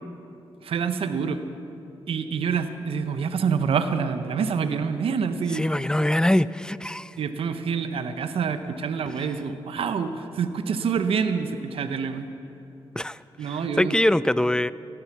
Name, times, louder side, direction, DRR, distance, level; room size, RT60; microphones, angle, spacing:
voice 1, 0.6-1.4 2.1-5.6 7.2-12.3 13.4-14.0, right 6 dB, 75° right, 9 dB, 0.8 m, -27 dB
voice 2, 5.5-7.2 13.0-14.7, left 1 dB, 10° left, 17 dB, 0.4 m, -23 dB
17.0 x 12.5 x 6.0 m, 2.9 s
cardioid pair, 60°, 10 cm